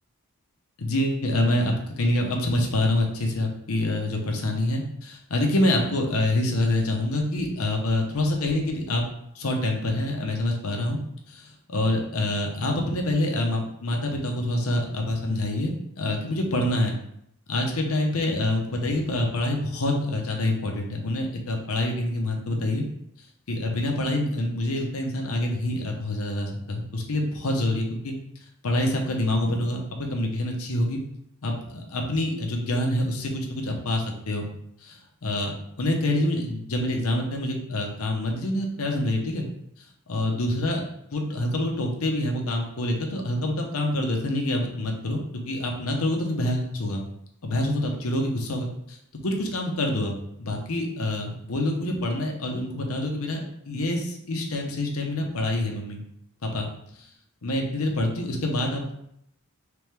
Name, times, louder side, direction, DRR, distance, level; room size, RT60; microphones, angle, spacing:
voice 1, 0.8-9.0 9.3-11.0 11.3-16.9 17.5-22.8 23.5-28.1 28.6-31.0 31.4-34.5 34.8-35.5 35.8-39.5 40.1-40.8 41.1-45.2 45.5-47.0 47.4-50.1 50.4-53.4 53.7-56.0 56.4-56.7 57.0-57.1 57.4-58.9, left 1 dB, 75° left, 1 dB, 0.8 m, -26 dB
3.4 x 3.4 x 3.2 m, 0.74 s
head